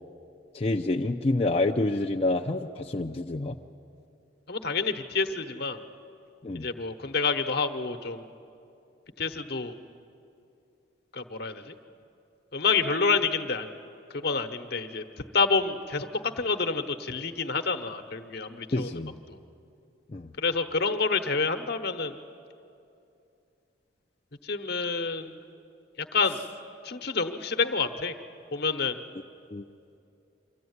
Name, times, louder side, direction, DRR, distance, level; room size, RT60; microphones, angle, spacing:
voice 1, 0.5-3.6 6.4-6.7 18.7-19.1 20.1-20.3 29.5-29.6, left 2 dB, 35° left, 2 dB, 0.5 m, -28 dB
voice 2, 4.5-5.8 6.5-8.3 9.2-9.7 11.1-11.7 12.5-13.7 14.1-15.0 15.3-16.1 16.4-18.9 19.3-19.4 20.4-22.2 24.4-25.4 26.0-26.4 26.8-28.1 28.5-29.0, left 4 dB, 60° left, 7 dB, 1.0 m, -28 dB
24.0 x 14.5 x 9.6 m, 2.6 s
head